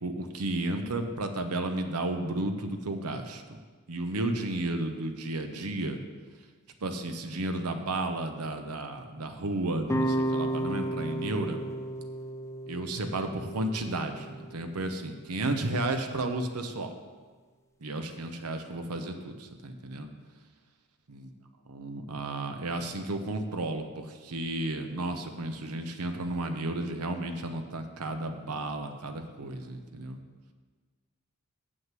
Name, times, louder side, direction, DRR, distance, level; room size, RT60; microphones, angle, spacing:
voice 1, 0.0-3.6 3.9-6.0 6.8-11.6 12.7-16.9 17.8-20.1 21.1-21.3 21.7-30.2, right 2 dB, 90° right, 6 dB, 0.9 m, -33 dB
sound 1, 9.9-15.0, right 1 dB, 15° left, 0.6 m, -33 dB
7.4 x 6.5 x 7.5 m, 1.5 s
head